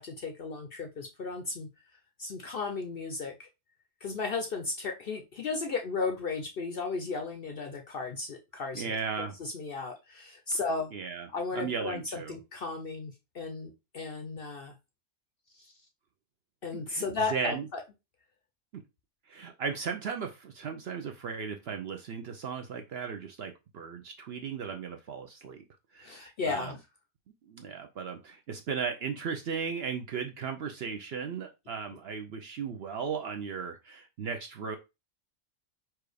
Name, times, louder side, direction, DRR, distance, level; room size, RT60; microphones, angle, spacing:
voice 1, 0.0-1.7 2.2-3.5 4.0-10.9 11.3-14.7 15.6-15.7 16.6-17.8 26.0-26.8, left 4 dB, 55° left, 5 dB, 0.6 m, -35 dB
voice 2, 8.7-9.4 10.5-10.6 10.9-12.4 16.7-17.7 18.7-18.8 19.3-25.6 25.9-26.8 27.5-34.8, right 6 dB, 60° right, 4 dB, 0.7 m, -36 dB
4.5 x 2.4 x 4.9 m, 0.25 s
omnidirectional pair, 1.5 m